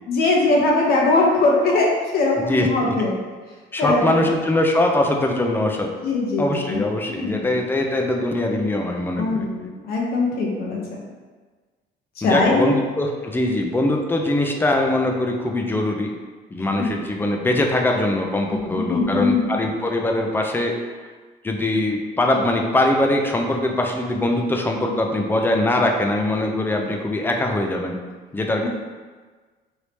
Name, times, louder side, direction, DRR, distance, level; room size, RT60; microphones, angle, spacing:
voice 1, 0.1-3.1 3.8-4.2 6.0-6.8 7.1-7.5 9.2-11.0 12.2-12.7 16.6-17.0 18.5-19.4 28.6-28.7, left 3 dB, 65° left, -2 dB, 0.7 m, -21 dB
voice 2, 2.4-2.9 3.7-5.9 6.4-9.5 12.2-16.1 16.5-20.8 21.4-28.0 28.3-28.7, left 1 dB, 15° left, 2 dB, 0.4 m, -22 dB
3.1 x 2.7 x 3.3 m, 1.4 s
cardioid pair, 110°, 17 cm